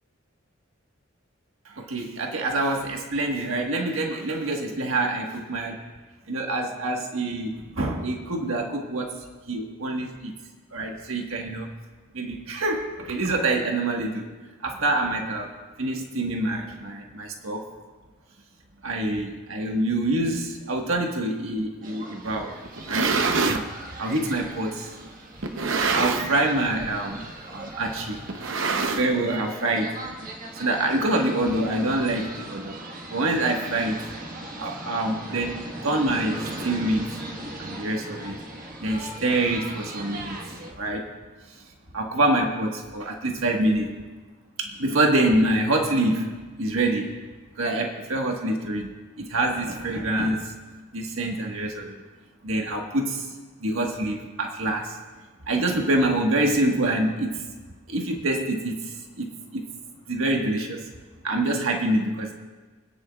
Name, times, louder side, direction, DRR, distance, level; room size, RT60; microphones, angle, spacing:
voice 1, 1.6-5.8 6.3-10.3 10.7-11.7 12.1-14.3 14.6-15.5 15.8-17.6 18.8-22.6 22.8-23.2 23.5-23.7 24.0-24.9 25.7-28.3 28.9-30.0 30.5-32.8 33.1-34.1 34.6-37.1 37.6-38.4 38.8-40.4 40.7-41.1 41.9-44.0 44.6-47.2 47.6-50.5 50.9-52.0 52.4-53.3 53.6-55.0 55.5-57.5 57.9-59.7 60.1-60.9 61.2-62.3, right 2 dB, 85° right, 1 dB, 1.5 m, -26 dB
sound 1, 21.8-40.7, right 1 dB, 40° right, 1.5 m, -39 dB
sound 2, 22.7-23.7 24.4-24.5 25.4-26.4 26.7-27.0 27.3-27.4 28.3-29.4, right 4 dB, 70° right, 0.8 m, -25 dB
26.0 x 10.5 x 2.4 m, 1.3 s
head